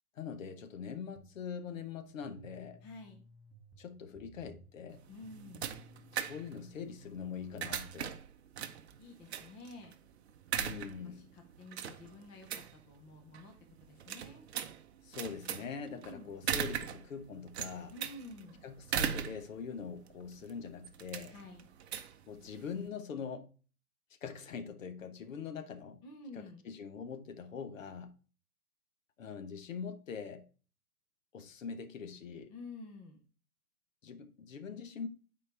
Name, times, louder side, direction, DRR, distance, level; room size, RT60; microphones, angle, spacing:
voice 1, 0.1-2.8 3.8-5.1 6.1-8.1 10.6-11.3 15.0-17.9 18.6-21.3 22.3-23.5 24.2-26.0 26.3-28.1 29.2-30.5 31.3-32.5 34.0-35.1, left 6 dB, 60° left, 1.2 m, -43 dB
sound 1, 1.2-8.0, right 3 dB, 20° right, 1.0 m, -58 dB
voice 2, 2.8-3.2 5.1-5.7 8.6-8.7 9.0-9.9 11.0-14.4 15.7-16.3 17.9-18.6 21.3-21.7 26.0-26.6 32.5-33.2, left 2 dB, 10° left, 0.6 m, -50 dB
sound 2, 4.9-22.9, right 9 dB, 45° right, 0.7 m, -40 dB
9.3 x 4.6 x 3.4 m
hypercardioid pair, 135°, 45 cm